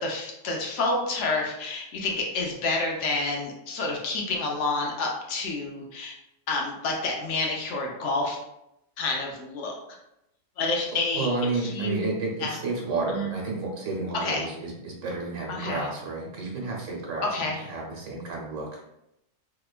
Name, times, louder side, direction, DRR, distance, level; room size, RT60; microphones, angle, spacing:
voice 1, 0.0-6.2 6.5-8.4 9.0-9.8 10.6-11.3 11.6-12.1 12.4-12.5 13.1-13.3 14.1-14.5 15.5-15.9 17.2-17.6, left 3 dB, 70° left, 0 dB, 0.9 m, -29 dB
voice 2, 11.1-18.8, right 3 dB, 75° right, -1 dB, 1.2 m, -31 dB
2.8 x 2.2 x 2.3 m, 0.83 s
omnidirectional pair, 1.3 m